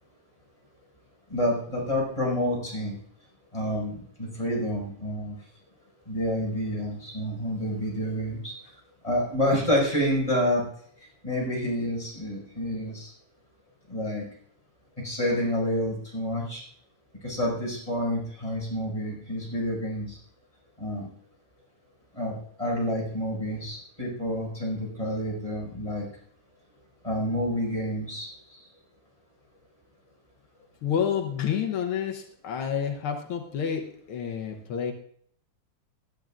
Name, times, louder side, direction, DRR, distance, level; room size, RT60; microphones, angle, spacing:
voice 1, 1.3-3.0 3.5-5.4 6.1-8.7 9.0-10.6 11.2-13.1 13.9-14.2 15.0-16.6 17.2-20.2 20.8-21.1 22.1-26.1 27.0-28.6, equal, 10° left, -3 dB, 5.9 m, -28 dB
voice 2, 30.8-34.9, left 8 dB, 80° left, 4 dB, 1.2 m, -29 dB
21.0 x 12.0 x 2.5 m, 0.62 s
omnidirectional pair, 3.7 m